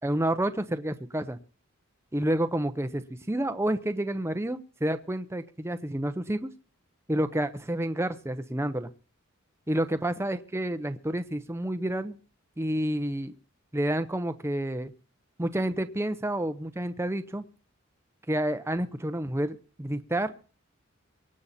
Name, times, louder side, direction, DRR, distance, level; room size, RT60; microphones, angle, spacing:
voice 1, 0.0-1.4 2.1-6.5 7.1-8.9 9.7-12.2 12.6-13.3 13.7-14.9 15.4-17.4 18.3-20.3, right 1 dB, 10° right, 9 dB, 0.7 m, -29 dB
24.0 x 8.6 x 4.2 m, 0.38 s
head